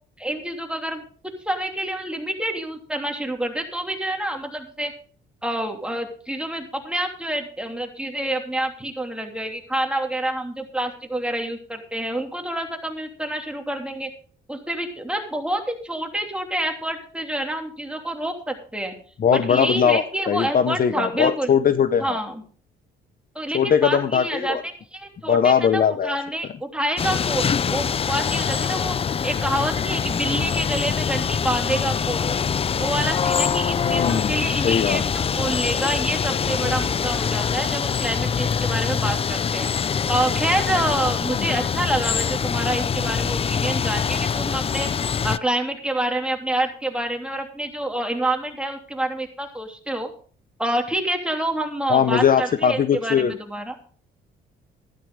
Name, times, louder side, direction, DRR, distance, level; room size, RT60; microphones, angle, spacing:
voice 1, 0.2-1.0 1.4-4.9 5.4-14.1 14.5-18.9 19.3-21.5 22.0-22.4 23.3-24.6 24.9-28.9 29.2-32.3 32.8-39.7 40.1-44.9 45.2-50.1 50.6-53.7, right 1 dB, 5° right, 2 dB, 3.1 m, -27 dB
voice 2, 19.2-22.2 23.5-24.6 25.3-26.2 33.8-34.3 34.6-35.0 41.4-41.5 51.9-53.3, left 7 dB, 45° left, 12 dB, 0.8 m, -20 dB
sound 1, 27.0-45.4, left 6 dB, 30° left, 0.4 m, -24 dB
13.5 x 12.0 x 3.7 m, 0.43 s
cardioid pair, 90°, 20 cm